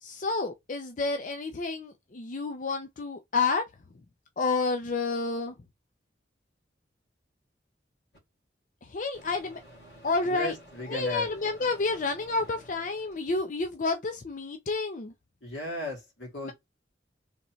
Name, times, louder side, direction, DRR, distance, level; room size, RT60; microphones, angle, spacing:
voice 1, 0.0-3.6 4.4-5.5 8.8-9.6 10.0-10.5 10.9-15.1 16.4-16.5, left 3 dB, 45° left, 0.5 m, -30 dB
Microwave oven, 8.1-8.2 9.1-13.4, equal, 65° left, 2.1 m, -52 dB
voice 2, 10.2-11.3 15.4-16.5, left 1 dB, 85° left, 2.7 m, -36 dB
4.0 x 3.6 x 3.0 m
head